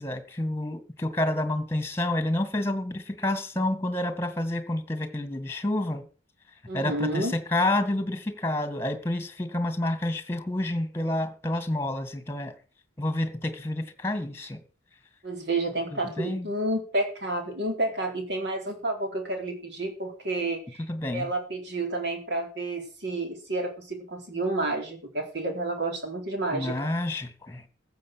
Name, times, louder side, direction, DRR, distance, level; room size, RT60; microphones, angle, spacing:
voice 1, 0.0-6.1 6.7-12.5 13.0-14.6 15.9-16.5 20.8-21.3 26.5-27.7, left 1 dB, 15° left, 1.9 m, -29 dB
voice 2, 6.7-7.3 15.2-20.8 21.1-26.9, right 2 dB, 60° right, 4.0 m, -30 dB
14.5 x 7.6 x 6.3 m
head